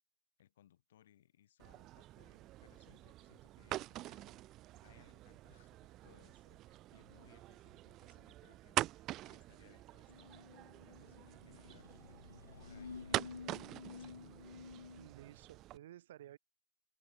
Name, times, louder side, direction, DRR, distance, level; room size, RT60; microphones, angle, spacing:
voice 1, 0.4-4.5 4.7-12.0 12.5-13.6 13.9-14.6, left 11 dB, 45° left, 3.7 m, -68 dB
sound 1, 1.6-15.8, right 15 dB, 25° right, 0.3 m, -45 dB
sound 2, 10.1-15.1, left 5 dB, 70° left, 0.3 m, -52 dB
voice 2, 15.0-16.4, right 12 dB, 45° right, 1.1 m, -54 dB
figure-of-eight pair, 130°, 0 cm